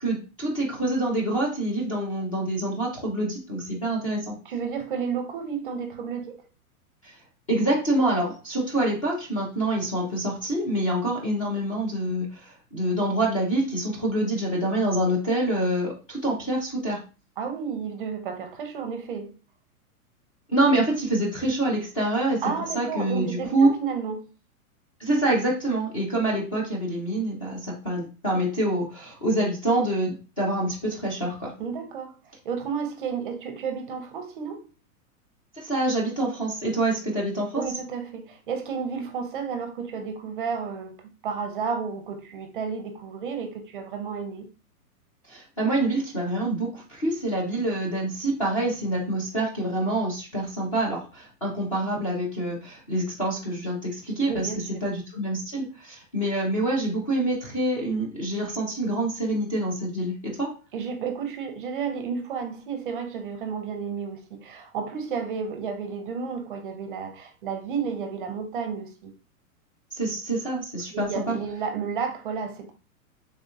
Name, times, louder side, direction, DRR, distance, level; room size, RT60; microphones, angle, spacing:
voice 1, 0.0-4.3 7.0-7.2 7.5-17.0 20.5-22.4 22.7-23.7 25.0-31.5 35.5-37.6 45.3-54.5 54.8-60.6 69.9-71.4, right 1 dB, 25° left, 0.3 m, -26 dB
voice 2, 4.4-6.4 17.4-19.4 22.4-24.3 31.6-34.7 37.5-44.5 54.3-54.8 60.7-69.1 70.9-72.7, right 6 dB, 40° right, 0.4 m, -32 dB
3.4 x 2.3 x 2.6 m
hypercardioid pair, 160°, 44 cm